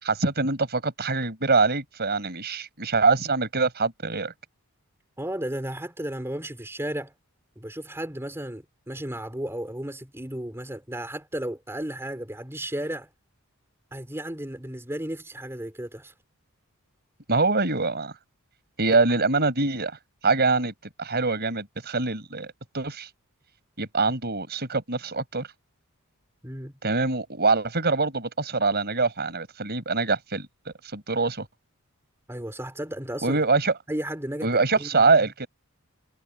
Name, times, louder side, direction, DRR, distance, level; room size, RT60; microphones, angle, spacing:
voice 1, 0.0-4.3 17.3-18.1 18.8-19.9 20.2-20.7 21.0-23.1 23.8-25.5 26.8-30.5 30.9-31.5 33.2-33.7 34.4-35.5, right 3 dB, 45° right, 6.4 m, -24 dB
voice 2, 5.2-7.1 7.6-13.1 13.9-16.1 18.9-19.0 26.4-26.7 32.3-33.4 33.9-35.3, right 1 dB, 10° right, 3.8 m, -34 dB
head